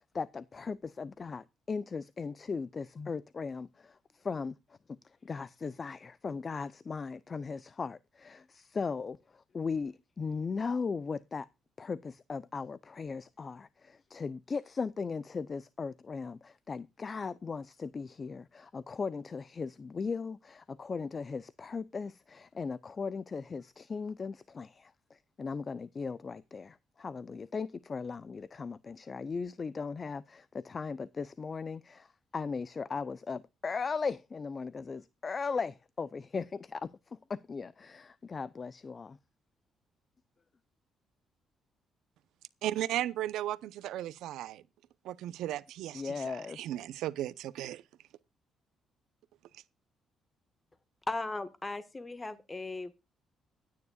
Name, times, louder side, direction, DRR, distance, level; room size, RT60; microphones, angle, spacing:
voice 1, 0.1-4.5 5.2-11.5 11.8-39.2 45.9-46.6, left 5 dB, 35° left, 0.6 m, -38 dB
voice 2, 42.6-44.6 45.0-47.8, right 13 dB, 85° right, 0.8 m, -36 dB
voice 3, 51.1-53.0, left 2 dB, 20° left, 1.5 m, -37 dB
23.0 x 9.6 x 2.4 m
cardioid pair, 90°, 0 cm